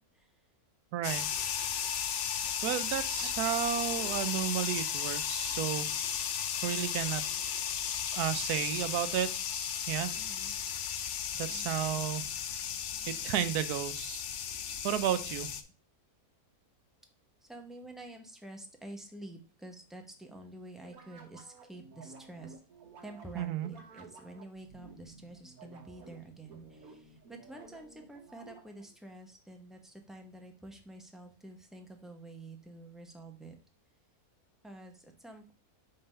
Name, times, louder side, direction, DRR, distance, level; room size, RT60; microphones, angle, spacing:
voice 1, 0.9-1.3 2.6-5.9 6.6-7.3 8.1-10.1 11.3-12.2 13.1-14.2 14.8-15.5 23.4-23.7, right 11 dB, 90° right, 12 dB, 1.2 m, -33 dB
sound 1, 1.0-15.6, left 8 dB, 60° left, 0.8 m, -35 dB
voice 2, 10.2-10.5 11.5-12.1 15.2-15.4 17.4-22.6 23.0-33.5 34.6-35.5, right 2 dB, ahead, 3 dB, 0.6 m, -49 dB
sound 2, 20.8-28.9, right 4 dB, 70° right, 1.6 m, -54 dB
5.5 x 3.8 x 5.4 m, 0.35 s
omnidirectional pair, 1.6 m